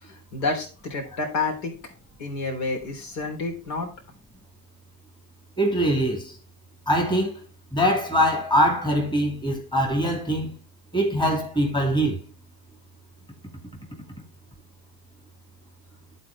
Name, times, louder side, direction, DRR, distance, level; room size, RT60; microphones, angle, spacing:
voice 1, 0.0-1.7 2.2-3.9, left 3 dB, 65° left, 3.5 m, -29 dB
voice 2, 5.6-6.3 6.9-7.3 7.7-10.6 10.9-12.2, equal, 10° left, 2.3 m, -22 dB
11.5 x 4.2 x 4.0 m
hypercardioid pair, 80°, 50 cm